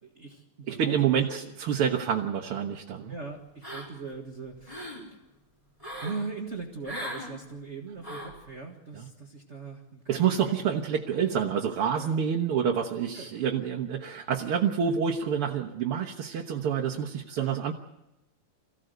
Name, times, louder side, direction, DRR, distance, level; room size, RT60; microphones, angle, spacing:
voice 1, 0.0-1.5 3.1-4.9 6.0-10.3 11.9-12.3 13.1-13.3 17.4-17.7, right 4 dB, 35° right, 1 dB, 1.7 m, -40 dB
voice 2, 0.7-3.1 9.0-9.1 10.1-17.7, right 8 dB, 85° right, 1 dB, 2.1 m, -27 dB
sound 1, 3.6-4.1 4.5-5.0 5.8-6.2 6.8-7.3 8.0-8.4, equal, 15° left, 4.9 m, -38 dB
23.5 x 16.0 x 8.0 m, 0.95 s
omnidirectional pair, 2.4 m